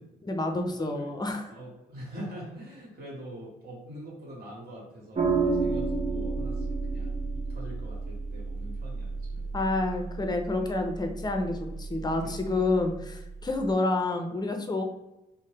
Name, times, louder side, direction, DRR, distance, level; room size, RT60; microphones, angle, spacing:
voice 1, 0.2-1.4 9.5-14.8, left 2 dB, 20° left, 4 dB, 0.6 m, -29 dB
voice 2, 0.8-1.2 1.5-9.6 12.2-12.6, right 1 dB, 50° right, -4 dB, 1.3 m, -44 dB
sound 1, 5.1-13.7, right 4 dB, 35° right, 0.7 m, -32 dB
2.7 x 2.1 x 3.3 m, 0.96 s
hypercardioid pair, 40°, 20 cm